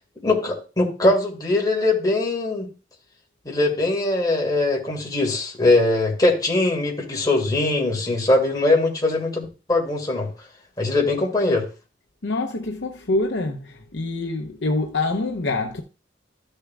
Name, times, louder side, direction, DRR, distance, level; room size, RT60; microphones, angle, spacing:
voice 1, 0.2-2.7 3.4-10.3 10.8-11.7, left 2 dB, 20° left, 2.5 m, -21 dB
voice 2, 12.2-15.8, left 2 dB, 65° left, 0.8 m, -25 dB
13.0 x 6.6 x 2.4 m
head